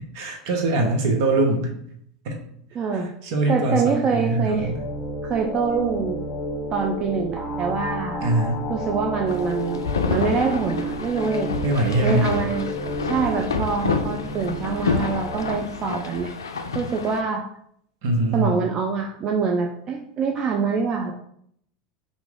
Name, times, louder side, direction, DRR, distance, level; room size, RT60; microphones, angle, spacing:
voice 1, 0.1-1.7 2.2-2.4 2.9-4.8 8.2-8.6 11.6-12.3 18.0-18.6, right 2 dB, 65° right, 2 dB, 0.8 m, -23 dB
voice 2, 2.7-3.1 3.5-4.7 5.2-6.2 6.7-8.2 8.7-9.8 10.1-11.5 12.0-12.7 13.0-16.3 16.7-17.4 18.3-21.1, right 5 dB, 40° right, 2 dB, 0.4 m, -25 dB
sound 1, 4.1-15.5, right 1 dB, 5° left, 0.9 m, -31 dB
sound 2, 9.3-17.2, left 5 dB, 85° left, 0.3 m, -29 dB
2.9 x 2.5 x 3.6 m, 0.68 s
hypercardioid pair, 85°, 2 cm